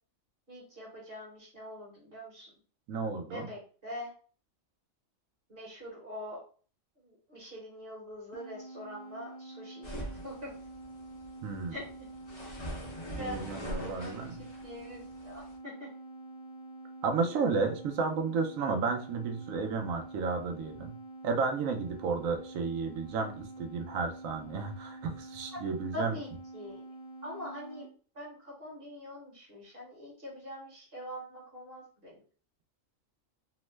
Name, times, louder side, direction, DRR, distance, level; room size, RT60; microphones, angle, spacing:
voice 1, 0.5-2.5 3.3-4.1 5.5-6.4 7.0-10.5 11.7-11.8 13.1-15.9 25.5-25.6 25.9-26.8 27.2-27.9 28.1-32.2, equal, 50° right, -4 dB, 1.4 m, -44 dB
voice 2, 2.9-3.5 11.4-11.8 13.2-14.4 17.0-21.0 21.2-26.2, right 4 dB, 85° right, 4 dB, 1.0 m, -32 dB
sound 1, 8.3-27.9, right 2 dB, 80° left, 1.0 m, -47 dB
sound 2, 9.8-15.6, equal, 30° left, 0.6 m, -43 dB
3.0 x 2.0 x 3.1 m, 0.41 s
omnidirectional pair, 1.4 m